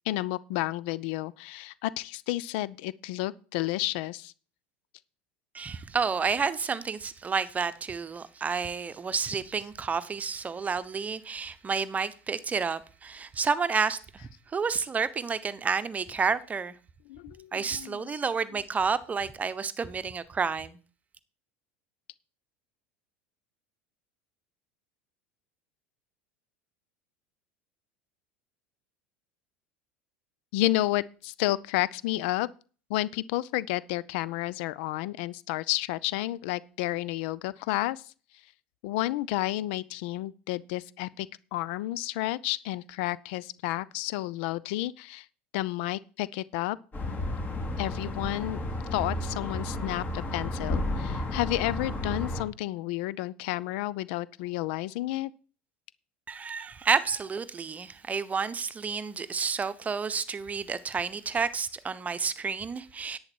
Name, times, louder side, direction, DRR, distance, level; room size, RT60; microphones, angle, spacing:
voice 1, 0.1-4.3 17.1-18.1 30.5-32.5 32.9-38.0 38.8-45.3 45.5-46.8 47.8-48.6 48.9-55.3, left 17 dB, 60° left, 0.5 m, -31 dB
voice 2, 5.5-16.7 17.5-20.8 56.3-63.2, right 5 dB, 25° right, 1.0 m, -30 dB
sound 1, 46.9-52.4, left 1 dB, 25° left, 3.0 m, -32 dB
10.5 x 8.8 x 4.6 m
figure-of-eight pair, 75°, 7 cm